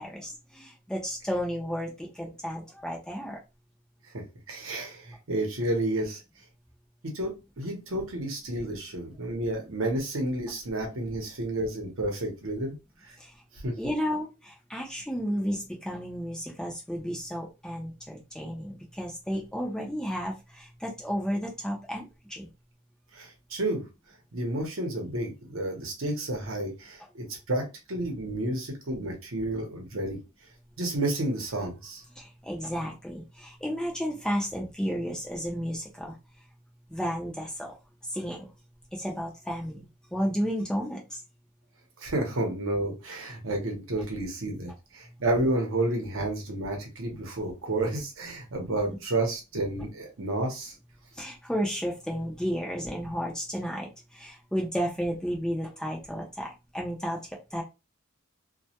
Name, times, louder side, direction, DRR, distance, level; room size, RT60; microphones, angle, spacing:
voice 1, 0.0-3.4 13.2-13.3 13.8-22.5 32.2-36.2 36.9-37.7 38.1-38.5 38.9-41.2 51.2-57.2 57.5-57.6, equal, 5° left, -1 dB, 0.4 m, -32 dB
voice 2, 4.1-6.2 7.1-12.8 13.0-13.1 13.6-13.9 23.1-23.8 24.3-30.2 30.8-32.0 42.0-50.7, right 1 dB, 60° right, 2 dB, 0.8 m, -31 dB
2.2 x 2.1 x 2.8 m, 0.26 s
head